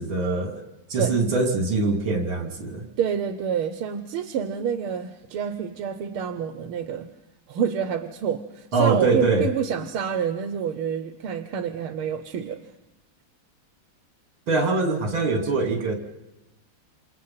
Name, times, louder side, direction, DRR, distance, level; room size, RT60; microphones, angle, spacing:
voice 1, 0.0-2.8 8.7-9.5 14.5-15.9, right 3 dB, 75° right, 4 dB, 3.8 m, -23 dB
voice 2, 3.0-7.1 7.5-12.6, right 8 dB, 90° right, 9 dB, 2.0 m, -28 dB
28.0 x 27.5 x 5.8 m, 1.0 s
omnidirectional pair, 2.3 m